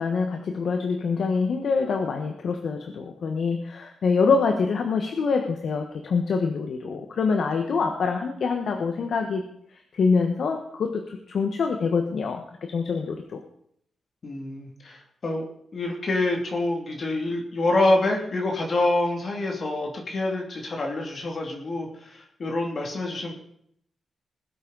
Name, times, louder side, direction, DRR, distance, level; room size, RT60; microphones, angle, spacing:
voice 1, 0.0-9.5 9.9-13.4, left 5 dB, 70° left, 4 dB, 1.3 m, -25 dB
voice 2, 14.2-15.4 15.7-23.3, left 2 dB, 50° left, 1 dB, 2.6 m, -26 dB
20.0 x 8.2 x 4.0 m, 0.69 s
cardioid pair, 90°, 0 cm